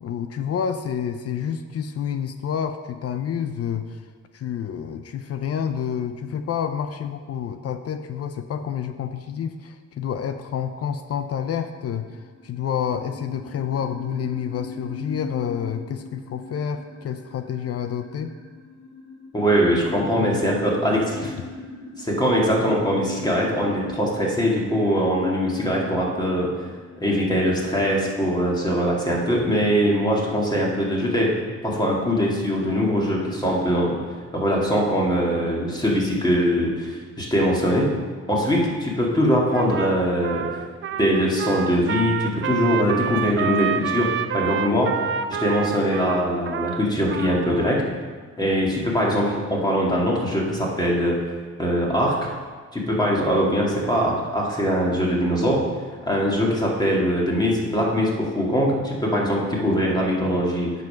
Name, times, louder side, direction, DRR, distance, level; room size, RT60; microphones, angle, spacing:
voice 1, 0.0-4.0 4.3-18.3 20.0-20.4, left 8 dB, 50° left, 9 dB, 0.6 m, -29 dB
sound 1, 11.7-28.1, left 3 dB, 75° left, 2.7 m, -40 dB
voice 2, 19.3-21.3 22.0-26.5 27.0-31.3 31.6-34.0 34.3-37.9 38.3-40.4 41.0-44.9 45.4-47.8 48.4-51.2 51.6-52.3 52.7-55.6 56.1-60.8, equal, 15° left, -3 dB, 2.3 m, -22 dB
Trumpet, 39.5-47.8, right 8 dB, 40° right, 0.5 m, -28 dB
8.9 x 5.5 x 5.7 m, 1.5 s
cardioid pair, 90°, 30 cm